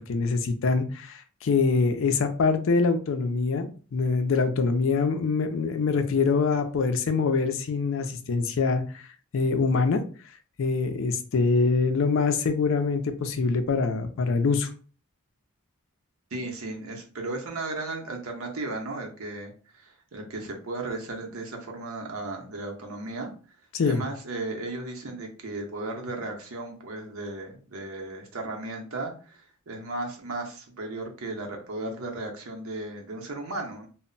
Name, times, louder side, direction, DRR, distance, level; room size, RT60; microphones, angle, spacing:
voice 1, 0.0-9.0 9.3-10.0 10.6-14.7 23.7-24.0, left 4 dB, 65° left, 0.4 m, -24 dB
voice 2, 16.3-23.3 23.8-33.9, right 2 dB, 85° right, 0.7 m, -35 dB
2.1 x 2.0 x 3.8 m
head